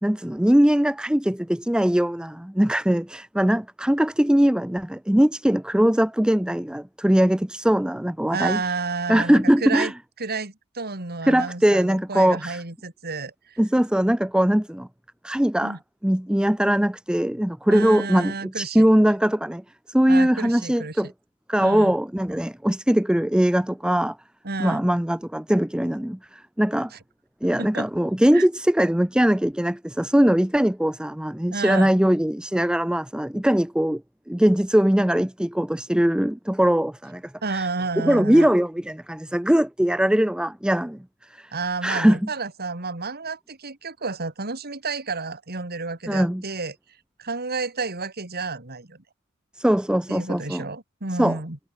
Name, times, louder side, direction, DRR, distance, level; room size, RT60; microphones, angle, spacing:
voice 1, 0.0-8.6 9.1-9.9 11.3-12.6 13.6-14.9 15.2-15.8 16.0-21.1 21.5-24.2 24.6-26.9 27.4-34.0 34.3-37.2 37.5-37.7 38.0-41.0 41.3-41.5 41.8-42.3 46.1-46.4 49.6-50.6 51.2-51.4, equal, 5° right, 0.5 m, -21 dB
voice 2, 8.3-9.9 10.2-13.6 15.6-15.8 17.7-18.8 20.1-21.1 21.6-21.9 24.4-24.8 27.6-27.9 28.3-28.5 31.5-31.9 37.4-38.5 41.5-46.7 47.2-49.0 50.1-51.6, right 4 dB, 45° right, 3.2 m, -31 dB
head